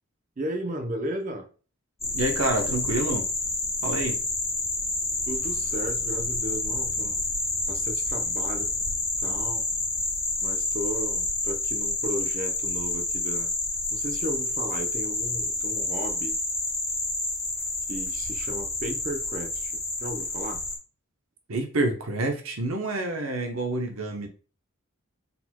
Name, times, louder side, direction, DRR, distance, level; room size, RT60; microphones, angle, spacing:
voice 1, 0.4-1.5 5.3-7.2 7.7-8.7 9.2-9.6 10.4-13.5 13.9-16.4 17.9-19.7 20.0-20.7, right 1 dB, 35° right, 0.7 m, -34 dB
sound 1, 2.0-20.8, left 2 dB, 15° left, 0.8 m, -29 dB
voice 2, 2.1-3.3 3.8-4.2 21.5-24.3, right 2 dB, 75° right, 0.9 m, -28 dB
4.4 x 4.0 x 2.2 m
head